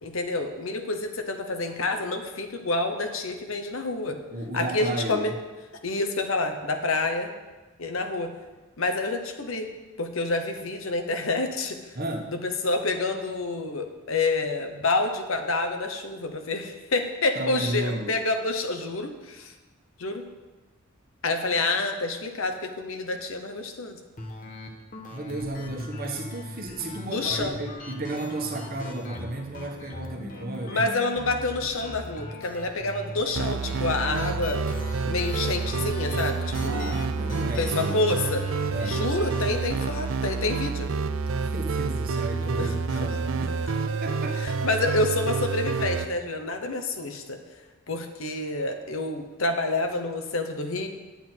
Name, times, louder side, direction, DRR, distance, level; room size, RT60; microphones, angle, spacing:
voice 1, 0.0-4.2 4.5-5.3 5.8-7.3 7.8-8.3 8.8-9.7 10.0-11.8 12.3-19.5 20.0-20.2 21.2-24.0 27.1-27.6 30.6-34.6 35.1-36.9 37.6-38.5 38.9-40.9 42.6-43.2 44.4-47.4 47.9-50.9, left 2 dB, 65° left, 6 dB, 1.0 m, -28 dB
voice 2, 4.3-5.3 11.9-12.3 17.3-18.1 25.1-30.9 36.6-37.9 38.7-39.0 41.4-44.4, right 2 dB, 40° right, 2 dB, 1.3 m, -33 dB
sound 1, 24.2-40.2, left 2 dB, 40° left, 1.1 m, -40 dB
sound 2, 33.3-46.1, right 4 dB, 65° right, 0.4 m, -28 dB
9.7 x 8.1 x 4.5 m, 1.2 s
head